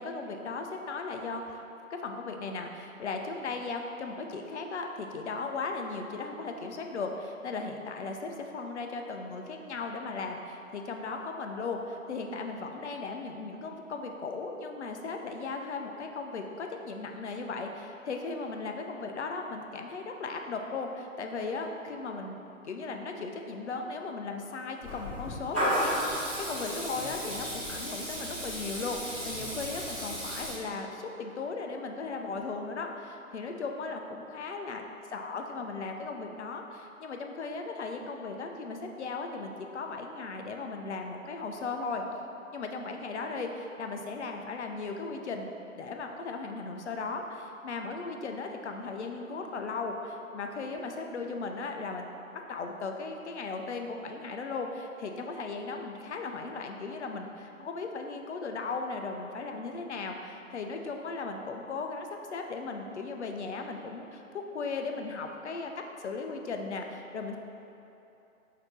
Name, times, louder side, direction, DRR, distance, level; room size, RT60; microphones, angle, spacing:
voice 1, 0.0-34.8 35.1-42.0 42.5-52.1 52.3-65.7 66.0-67.4, left 4 dB, 55° left, 4 dB, 0.5 m, -37 dB
Water tap faucet / Liquid, 24.8-30.5, equal, 10° right, 0.4 m, -33 dB
5.7 x 2.8 x 3.1 m, 2.9 s
figure-of-eight pair, 130°, 42 cm